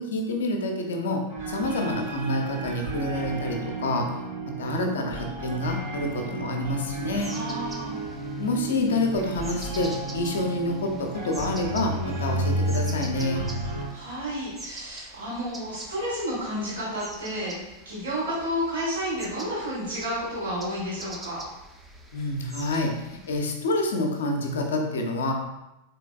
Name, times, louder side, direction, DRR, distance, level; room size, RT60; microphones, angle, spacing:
voice 1, 0.0-4.1 4.5-7.3 8.4-13.4 22.1-25.3, left 2 dB, 60° left, 3 dB, 0.4 m, -28 dB
sound 1, 1.3-13.9, right 2 dB, 50° right, 1.1 m, -32 dB
sound 2, 7.0-23.4, right 2 dB, 10° right, 0.4 m, -45 dB
voice 2, 7.3-8.0 13.3-21.4, equal, 65° right, -8 dB, 1.4 m, -31 dB
3.8 x 2.8 x 2.2 m, 0.95 s
figure-of-eight pair, 90°, 0 cm